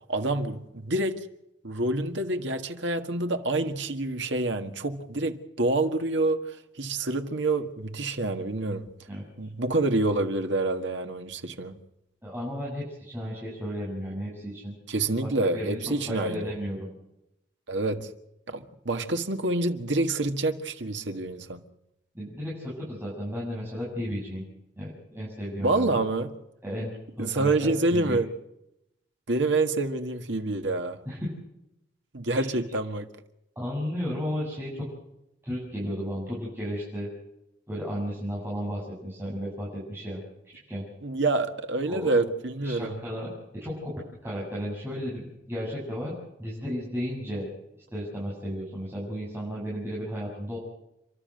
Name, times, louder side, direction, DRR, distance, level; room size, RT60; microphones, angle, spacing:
voice 1, 0.1-1.3 1.6-8.9 9.4-11.8 14.9-16.5 17.7-18.1 18.5-21.6 25.6-26.3 27.2-28.3 29.3-31.0 32.1-33.1 41.0-43.0, right 2 dB, 80° right, 1.7 m, -27 dB
voice 2, 12.2-14.8 15.2-15.8 16.1-16.9 22.1-24.4 24.8-26.0 26.6-26.9 27.2-28.2 31.1-31.3 32.3-32.5 33.6-34.9 35.4-37.1 37.7-40.2 40.7-40.8 41.9-42.3 42.6-43.9 44.2-46.1 46.4-47.5 47.9-50.6, equal, 15° right, 7.3 m, -34 dB
30.0 x 12.5 x 7.8 m
head